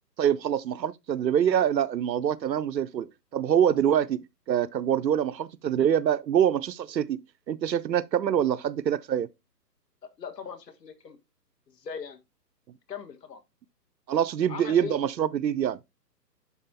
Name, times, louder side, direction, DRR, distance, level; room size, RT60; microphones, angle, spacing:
voice 1, 0.2-7.2 7.5-9.3 14.1-15.8, right 9 dB, 85° right, 0.7 m, -25 dB
voice 2, 10.0-11.2 11.7-12.2 12.9-13.4 14.5-14.9, left 6 dB, 70° left, 1.7 m, -39 dB
11.0 x 4.2 x 2.8 m
hypercardioid pair, 160°, 50 cm